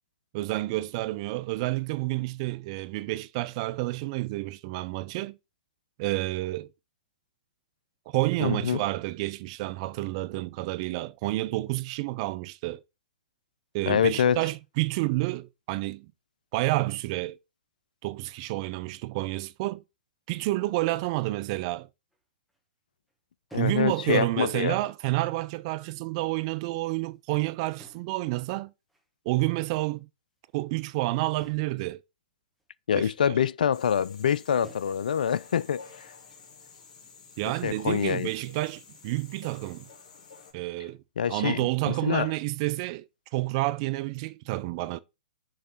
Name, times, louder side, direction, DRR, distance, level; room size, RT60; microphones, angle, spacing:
voice 1, 0.3-5.4 6.0-6.7 8.1-12.8 13.7-16.1 16.5-17.4 18.0-19.8 20.3-21.9 23.5-28.7 29.3-30.1 30.5-32.0 32.9-33.4 37.4-39.9 40.5-41.0 41.3-43.0 43.3-45.0, right 19 dB, 45° right, 0.5 m, -29 dB
voice 2, 8.4-8.8 13.9-14.4 23.5-24.8 32.9-35.8 37.6-38.3 41.2-42.3, left 8 dB, 70° left, 0.3 m, -25 dB
sound 1, 22.1-22.2 22.5-22.6 23.1-23.2 23.5-23.9 24.4-24.5 25.3-25.7 26.3-27.4 27.8-28.3 28.9-29.1 29.8-29.9 31.4-31.8 32.6-32.7 33.1-33.3 33.6-33.8 34.1-34.4 34.6-35.0, right 2 dB, ahead, 1.3 m, -52 dB
sound 2, 33.7-40.5, left 5 dB, 55° left, 2.7 m, -51 dB
6.4 x 3.3 x 5.6 m
hypercardioid pair, 115°, 5 cm